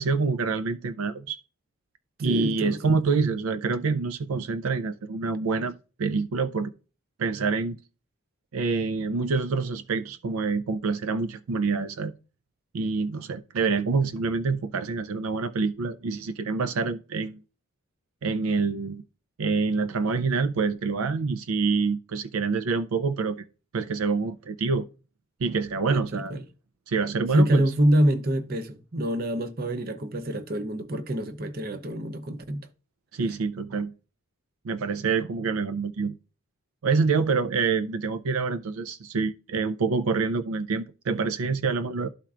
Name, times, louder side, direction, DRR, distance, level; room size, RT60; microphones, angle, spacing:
voice 1, 0.0-1.4 2.2-6.7 7.2-7.8 8.5-12.1 12.7-17.4 18.2-19.0 19.4-23.4 23.7-24.9 25.4-26.3 26.9-27.6 33.1-33.9 34.6-36.1 36.8-42.1, right 4 dB, 75° right, 0.4 m, -26 dB
voice 2, 2.2-2.8 25.9-26.4 27.3-32.7, right 1 dB, 45° right, 0.7 m, -26 dB
12.5 x 4.4 x 2.4 m
head